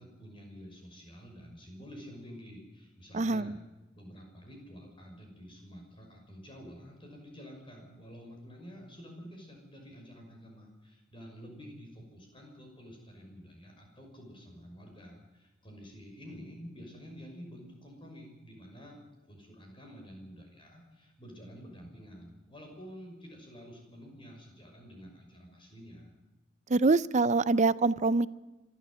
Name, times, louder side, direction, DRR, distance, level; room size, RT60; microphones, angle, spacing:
voice 1, 0.0-3.6 3.9-19.0 19.3-26.2, equal, 30° left, 2 dB, 6.2 m, -49 dB
voice 2, 3.1-3.5 26.7-28.3, right 3 dB, 40° right, 17 dB, 0.6 m, -25 dB
26.0 x 13.0 x 7.8 m, 1.1 s
head